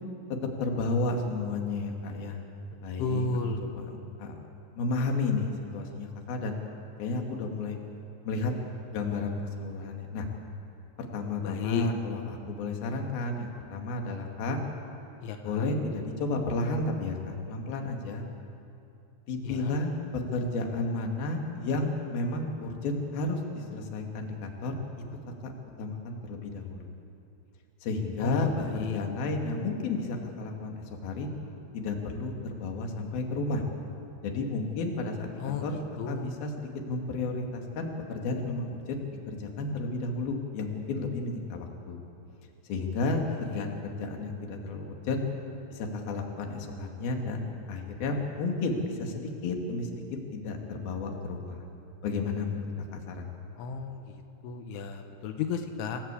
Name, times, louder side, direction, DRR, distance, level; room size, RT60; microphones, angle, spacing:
voice 1, 0.6-2.4 2.8-3.2 3.6-4.4 4.8-6.6 7.0-7.8 8.3-8.5 8.9-10.3 11.0-14.6 15.4-18.3 19.3-24.8 25.4-25.5 25.8-26.9 27.8-31.3 31.7-33.6 34.2-35.8 36.1-42.0 42.6-45.2 45.7-50.0 50.3-51.6 52.0-52.7 52.9-53.3, left 3 dB, 60° left, 2 dB, 3.8 m, -32 dB
voice 2, 3.0-3.6 11.4-11.9 15.2-15.7 19.4-19.7 28.2-28.5 28.8-29.0 35.4-35.6 36.0-36.3 43.6-43.7 53.6-54.0 54.4-56.0, left 5 dB, 90° left, 5 dB, 3.8 m, -33 dB
27.0 x 17.5 x 8.3 m, 2.7 s
omnidirectional pair, 5.4 m